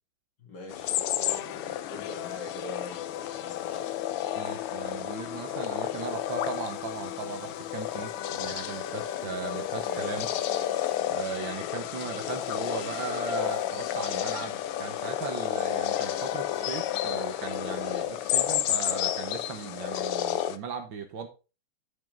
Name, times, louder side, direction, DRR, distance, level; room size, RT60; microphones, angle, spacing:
voice 1, 0.4-3.9 9.3-10.4, left 1 dB, 50° left, 2.7 m, -44 dB
sound 1, 0.7-20.6, left 12 dB, 90° left, 1.7 m, -32 dB
sound 2, 1.3-18.0, left 11 dB, 70° left, 1.3 m, -40 dB
voice 2, 4.4-10.3 11.1-21.3, right 5 dB, 65° right, 1.8 m, -38 dB
11.0 x 5.6 x 3.8 m
omnidirectional pair, 2.4 m